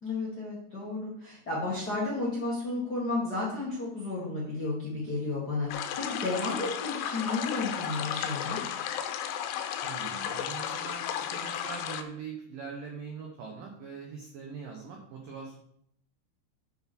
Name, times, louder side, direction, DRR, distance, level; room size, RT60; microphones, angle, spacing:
voice 1, 0.0-8.6, left 3 dB, 55° left, -6 dB, 1.0 m, -32 dB
sound 1, 5.7-12.0, left 9 dB, 85° left, 3.1 m, -34 dB
voice 2, 9.8-15.5, right 5 dB, 85° right, 1 dB, 1.9 m, -42 dB
9.4 x 6.0 x 4.4 m, 0.70 s
omnidirectional pair, 5.5 m